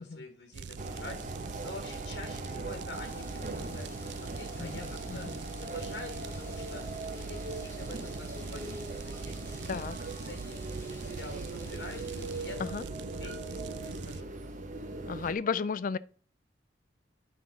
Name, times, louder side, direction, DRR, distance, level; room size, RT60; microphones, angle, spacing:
voice 1, 0.0-14.5, left 2 dB, 85° left, 1.6 m, -47 dB
sound 1, 0.5-14.2, right 6 dB, 75° right, 0.4 m, -44 dB
sound 2, 0.8-15.3, right 2 dB, 45° right, 1.0 m, -40 dB
sound 3, 2.9-12.5, left 1 dB, 15° left, 1.7 m, -54 dB
voice 2, 4.6-5.4 9.7-10.0 12.6-12.8 15.1-16.0, left 5 dB, 50° left, 0.4 m, -34 dB
9.3 x 5.7 x 3.8 m
head